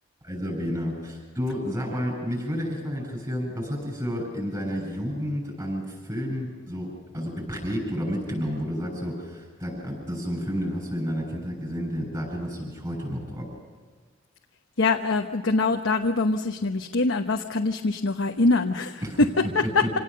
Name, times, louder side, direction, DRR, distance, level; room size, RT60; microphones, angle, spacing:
voice 1, 0.2-13.5 19.0-19.3 19.6-19.9, equal, 20° right, -1 dB, 7.4 m, -31 dB
voice 2, 14.8-19.4 19.7-19.8, left 3 dB, 80° left, 3 dB, 1.0 m, -23 dB
26.5 x 18.0 x 6.7 m, 1.5 s
head